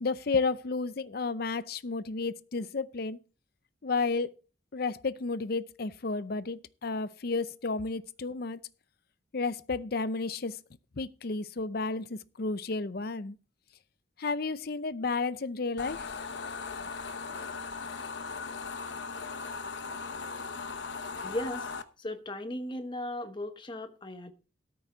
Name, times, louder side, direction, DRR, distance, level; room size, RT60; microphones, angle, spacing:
voice 1, 0.0-3.2 3.8-4.4 4.7-8.6 9.3-10.6 11.0-13.4 14.2-16.1, left 4 dB, 50° left, 0.6 m, -32 dB
sound 1, 15.8-21.8, left 4 dB, 65° left, 0.9 m, -38 dB
voice 2, 21.2-21.7 22.0-24.3, left 1 dB, 25° left, 1.1 m, -36 dB
13.5 x 6.3 x 4.6 m
head